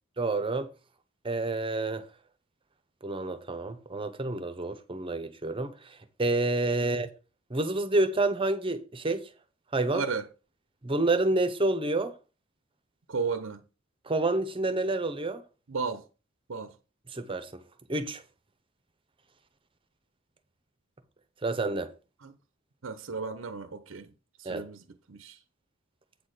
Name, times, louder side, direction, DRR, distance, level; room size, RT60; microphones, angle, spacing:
voice 1, 0.2-0.7 1.2-2.1 3.0-7.1 7.5-9.3 9.7-10.0 10.8-12.1 14.1-15.4 17.1-17.6 17.9-18.2 21.4-21.9 24.4-24.7, right 2 dB, 25° right, 0.9 m, -28 dB
voice 2, 9.9-10.3 13.1-13.6 15.7-16.0 16.5-16.7 22.2-22.3 22.8-24.1 24.4-25.4, right 4 dB, 70° right, 0.8 m, -34 dB
8.3 x 4.2 x 6.5 m
head